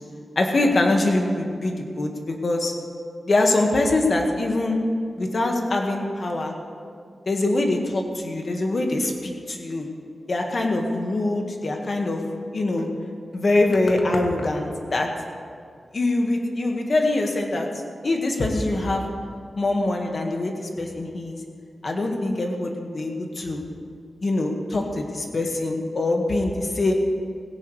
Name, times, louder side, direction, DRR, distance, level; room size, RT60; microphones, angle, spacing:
voice 1, 0.4-2.7 3.3-4.8 5.2-6.5 7.3-9.9 10.3-12.2 12.5-12.9 13.3-15.1 15.9-17.7 18.0-19.0 19.6-21.4 21.8-23.6 24.2-26.9, left 2 dB, 55° left, 2 dB, 1.8 m, -23 dB
17.5 x 17.0 x 3.4 m, 2.2 s
wide cardioid pair, 95°, 0 cm